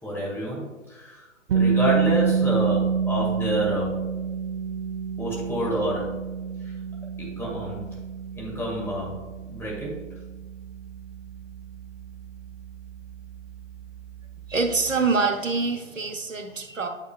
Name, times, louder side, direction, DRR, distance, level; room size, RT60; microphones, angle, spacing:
voice 1, 0.0-1.3 1.5-4.0 5.2-6.2 6.6-6.7 7.2-8.0 8.4-9.2 9.5-10.0, right 1 dB, 5° left, -4 dB, 1.8 m, -28 dB
sound 1, 1.5-13.3, right 6 dB, 55° right, 0.6 m, -28 dB
voice 2, 14.5-16.9, right 4 dB, 90° right, 7 dB, 0.9 m, -25 dB
9.3 x 6.3 x 2.4 m, 1.2 s
figure-of-eight pair, 125°, 37 cm